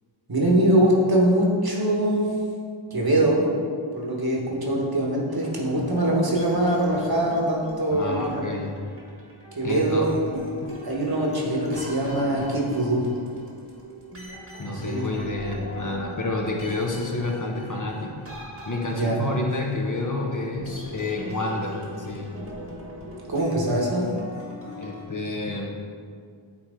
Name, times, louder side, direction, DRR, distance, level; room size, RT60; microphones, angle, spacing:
voice 1, 0.3-2.3 2.9-3.4 3.9-8.4 9.6-10.1 10.8-13.1 14.6-15.1 18.9-19.2 23.3-24.1, right 1 dB, 50° right, -3 dB, 1.3 m, -23 dB
sound 1, 5.3-25.0, left 1 dB, 30° right, 1.3 m, -41 dB
voice 2, 7.9-8.7 9.6-10.1 10.6-10.7 14.6-18.1 18.7-22.3 24.8-25.7, left 2 dB, 40° left, 0 dB, 0.8 m, -29 dB
8.5 x 3.3 x 3.7 m, 2.1 s
wide cardioid pair, 45°, 49 cm